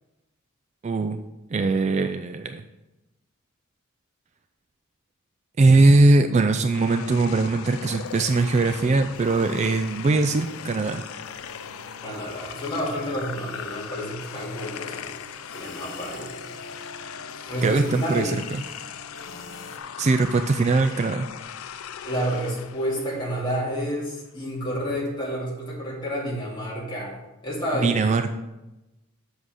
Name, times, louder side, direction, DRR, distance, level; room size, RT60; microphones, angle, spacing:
voice 1, 0.8-1.2 1.5-2.6 5.6-11.0 17.6-18.4 20.0-21.3 27.8-28.3, right 3 dB, 35° right, 8 dB, 0.3 m, -20 dB
sound 1, 6.7-24.1, left 8 dB, 85° left, 0.5 m, -39 dB
sound 2, 6.9-19.8, left 2 dB, 60° left, 1.0 m, -46 dB
voice 2, 12.0-15.2 15.5-16.3 17.5-18.3 22.0-27.2 27.4-28.0, equal, 20° left, -5 dB, 2.5 m, -29 dB
7.4 x 6.2 x 5.0 m, 1.0 s
head